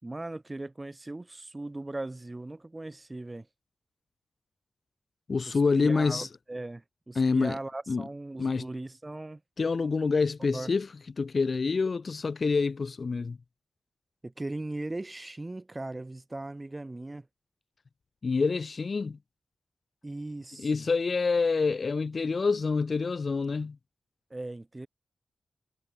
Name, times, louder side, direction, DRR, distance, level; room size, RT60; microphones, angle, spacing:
voice 1, 0.0-3.5 5.5-9.4 10.5-10.7 14.2-17.3 20.0-20.7 24.3-24.9, right 2 dB, 15° right, 3.0 m, -38 dB
voice 2, 5.3-6.3 7.2-7.6 7.9-8.0 8.4-8.7 9.6-10.9 11.2-13.4 18.2-19.2 20.6-23.8, left 4 dB, 40° left, 0.4 m, -27 dB
wide cardioid pair, 155°, 0 cm